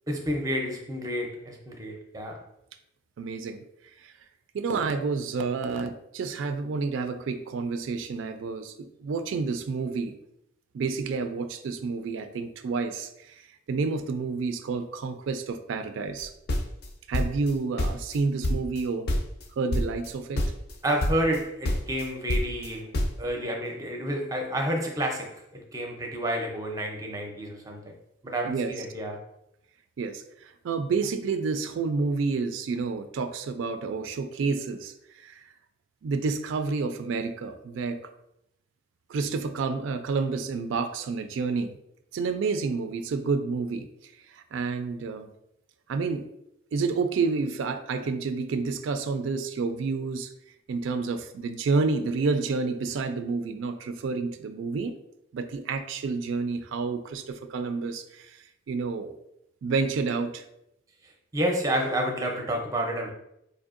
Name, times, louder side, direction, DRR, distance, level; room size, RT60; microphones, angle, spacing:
voice 1, 0.1-2.4 20.8-22.9 23.2-27.9 28.2-29.2 61.3-63.1, right 1 dB, 20° right, 2 dB, 0.5 m, -30 dB
voice 2, 3.2-3.6 4.0-4.1 4.5-8.7 9.0-10.2 10.7-13.4 13.7-16.3 17.1-19.1 19.6-20.4 28.4-28.7 30.0-35.4 36.0-38.0 39.1-41.7 42.1-43.9 44.3-45.3 45.9-46.2 46.7-50.3 50.7-55.0 55.3-58.3 58.7-59.1 59.6-60.4, right 4 dB, 80° right, 8 dB, 0.3 m, -29 dB
sound 1, 16.2-17.5 17.8-18.8 19.1-19.4 19.7-20.1 20.4-20.7 21.0-21.4 21.7-23.2, left 1 dB, 50° left, 0.4 m, -27 dB
4.4 x 2.6 x 2.4 m, 0.80 s
head